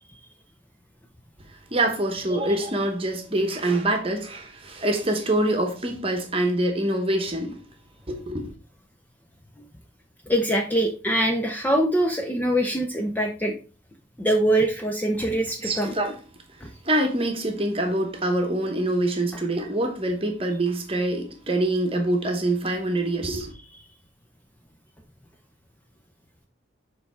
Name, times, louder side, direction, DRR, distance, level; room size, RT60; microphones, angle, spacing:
voice 1, 1.7-7.6 8.1-8.5 15.6-16.2 16.8-23.5, right 1 dB, 25° right, 1.0 m, -25 dB
voice 2, 10.3-13.5 14.2-15.9 16.6-16.7, right 1 dB, 10° left, 0.5 m, -23 dB
6.8 x 3.3 x 4.3 m
head